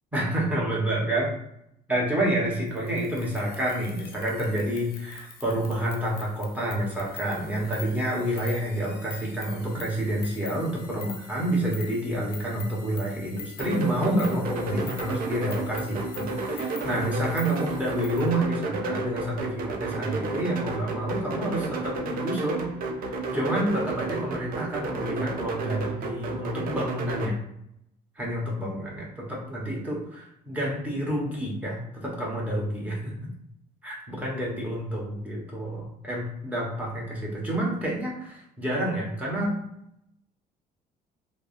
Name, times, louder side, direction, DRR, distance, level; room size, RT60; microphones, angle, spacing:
voice 1, 0.1-1.3 1.9-22.7 23.3-27.4 28.2-33.2 33.8-39.5, right 1 dB, 10° right, -5 dB, 1.0 m, -29 dB
sound 1, 2.7-18.3, left 7 dB, 65° left, 0.5 m, -45 dB
sound 2, 13.6-27.3, right 3 dB, 60° right, 0.5 m, -32 dB
3.3 x 2.1 x 2.5 m, 0.77 s
cardioid pair, 110°, 17 cm